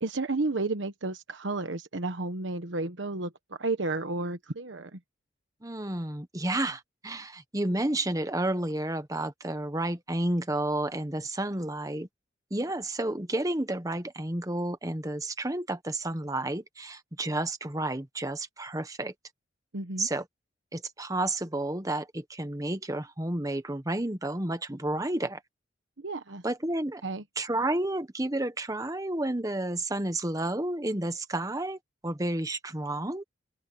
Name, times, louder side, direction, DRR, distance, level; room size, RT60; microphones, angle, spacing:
voice 1, 0.0-5.0 19.7-20.1 26.0-26.4 27.0-27.2, right 2 dB, 75° right, 1.2 m, -32 dB
voice 2, 5.6-12.1 12.5-19.1 20.0-20.2 20.7-25.4 26.4-27.0 27.4-33.2, right 1 dB, 20° right, 1.3 m, -31 dB
head